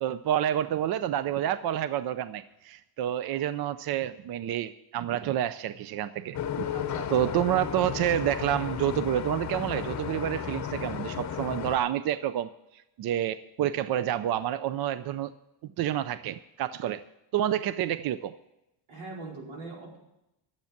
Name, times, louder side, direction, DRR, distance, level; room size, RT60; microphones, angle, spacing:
voice 1, 0.0-6.7 7.1-15.3 15.8-17.0 17.3-18.3, right 11 dB, 55° right, 14 dB, 0.5 m, -29 dB
sound 1, 6.3-11.8, left 9 dB, 35° left, 0.8 m, -34 dB
voice 2, 6.7-7.3 18.9-20.0, right 2 dB, 80° right, -2 dB, 4.7 m, -41 dB
12.0 x 8.2 x 7.2 m, 0.88 s
cardioid pair, 175°, 47 cm